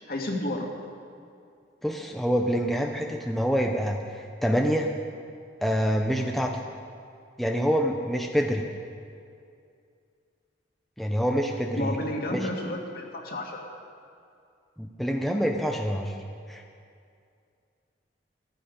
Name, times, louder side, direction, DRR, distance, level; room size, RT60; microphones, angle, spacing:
voice 1, 0.1-0.7 11.8-13.6, left 1 dB, 55° left, 0 dB, 2.0 m, -31 dB
voice 2, 1.8-4.9 5.6-6.6 7.4-8.6 11.0-12.0 12.3-12.5 14.8-16.2 16.5-16.6, equal, ahead, 2 dB, 0.7 m, -26 dB
14.5 x 12.0 x 5.2 m, 2.4 s
head